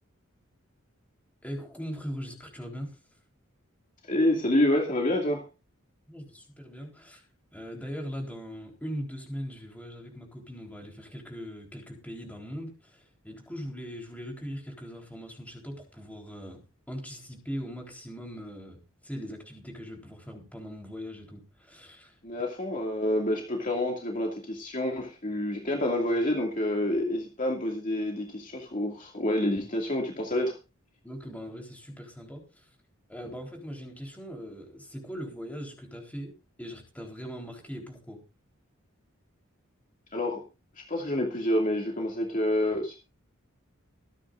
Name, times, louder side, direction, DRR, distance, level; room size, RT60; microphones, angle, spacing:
voice 1, 1.4-3.0 6.1-7.2 7.5-16.6 16.9-22.2 31.0-32.6 33.1-38.2, equal, 5° left, 3.9 m, -40 dB
voice 2, 4.0-5.5 22.2-30.6 40.1-40.4 40.8-43.0, left 1 dB, 40° left, 2.4 m, -28 dB
24.5 x 9.9 x 2.6 m
head